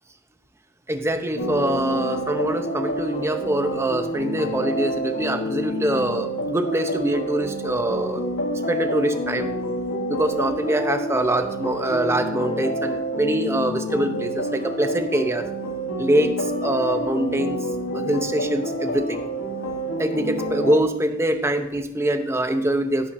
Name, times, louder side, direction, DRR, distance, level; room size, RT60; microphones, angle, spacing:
voice 1, 0.9-8.3 8.7-9.5 10.1-15.5 16.0-17.6 17.9-19.2 20.0-23.1, right 1 dB, 15° right, 7 dB, 0.7 m, -24 dB
sound 1, 1.4-20.8, equal, 70° left, 1.3 m, -28 dB
11.5 x 11.5 x 2.6 m, 0.88 s
head